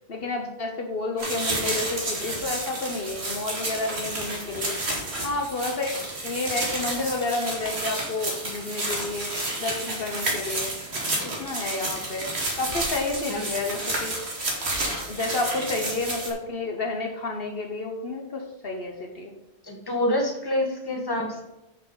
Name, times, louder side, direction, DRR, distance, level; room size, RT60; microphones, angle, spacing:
voice 1, 0.1-4.7 5.2-9.3 9.6-10.7 11.4-12.3 12.5-14.1 15.0-19.3, left 3 dB, 65° left, 3 dB, 1.2 m, -30 dB
sound 1, 1.2-16.3, right 2 dB, 80° right, 2.2 m, -30 dB
voice 2, 19.6-21.4, left 1 dB, 20° left, 1 dB, 1.5 m, -27 dB
10.0 x 5.9 x 3.9 m, 0.97 s
omnidirectional pair, 1.1 m